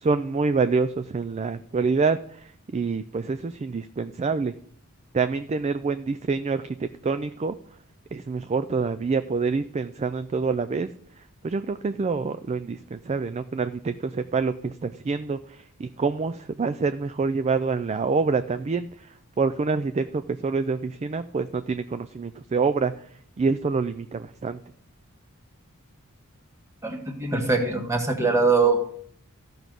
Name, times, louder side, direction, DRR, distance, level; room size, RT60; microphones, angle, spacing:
voice 1, 0.0-2.2 2.7-4.5 5.1-7.6 8.1-10.9 11.4-15.4 15.8-18.9 19.4-22.9 23.4-24.6, right 4 dB, 30° right, 12 dB, 0.3 m, -26 dB
voice 2, 26.8-28.8, right 4 dB, 15° right, 3 dB, 1.5 m, -22 dB
14.5 x 6.2 x 5.2 m, 0.64 s
head